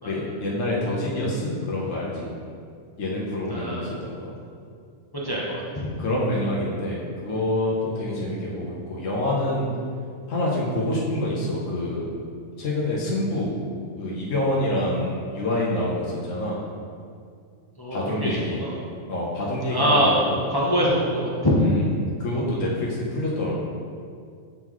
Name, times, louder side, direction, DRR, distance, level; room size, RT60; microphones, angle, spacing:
voice 1, 0.0-2.3 3.0-4.3 5.3-5.4 6.0-9.7 10.3-12.1 12.6-13.6 14.0-16.6 17.9-18.6 19.1-20.4 21.6-21.8 22.2-23.5, left 1 dB, 75° left, -5 dB, 1.3 m, -27 dB
voice 2, 3.5-3.9 5.1-5.9 17.8-18.7 19.7-20.1 20.5-21.6, equal, 25° left, -6 dB, 0.6 m, -24 dB
8.6 x 3.8 x 3.0 m, 2.3 s
omnidirectional pair, 1.3 m